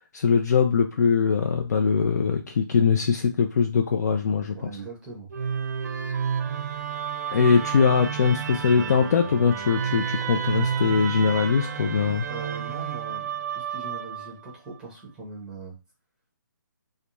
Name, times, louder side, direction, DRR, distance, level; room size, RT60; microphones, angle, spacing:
voice 1, 0.0-4.6 7.3-12.2, left 6 dB, 55° left, 4 dB, 0.4 m, -22 dB
voice 2, 4.5-5.3 12.0-15.8, right 3 dB, 5° right, -3 dB, 0.6 m, -40 dB
Musical instrument, 5.3-14.5, right 7 dB, 55° right, 0.5 m, -31 dB
2.4 x 2.2 x 2.9 m, 0.29 s
hypercardioid pair, 160°, 11 cm